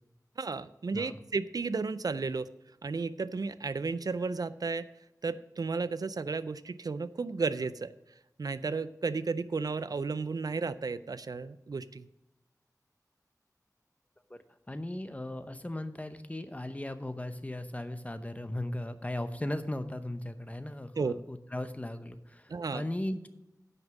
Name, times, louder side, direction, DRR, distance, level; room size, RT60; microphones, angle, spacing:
voice 1, 0.4-2.5 2.8-4.9 5.2-7.9 8.4-12.1 21.0-21.1 22.5-22.8, right 4 dB, 70° right, 15 dB, 0.4 m, -33 dB
voice 2, 14.7-23.3, left 1 dB, 20° left, 9 dB, 0.8 m, -37 dB
9.6 x 5.3 x 7.1 m, 0.93 s
wide cardioid pair, 70°, 7 cm